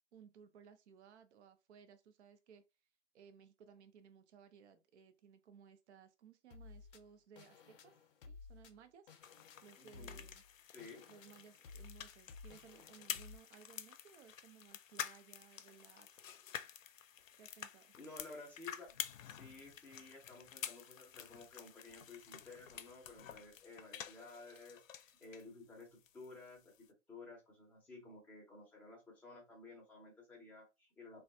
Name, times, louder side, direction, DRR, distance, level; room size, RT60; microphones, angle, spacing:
voice 1, 0.1-2.6 3.1-9.1 9.6-10.4 11.1-16.3 17.4-17.9, right 7 dB, 60° right, 0.7 m, -61 dB
sound 1, 6.5-13.4, left 4 dB, 45° left, 0.6 m, -56 dB
sound 2, 9.2-25.5 25.8-26.9, left 9 dB, 90° left, 0.5 m, -50 dB
voice 2, 9.8-10.3 10.7-11.0 18.0-31.2, left 3 dB, 5° left, 0.6 m, -54 dB
3.2 x 2.3 x 2.6 m
hypercardioid pair, 140°, 38 cm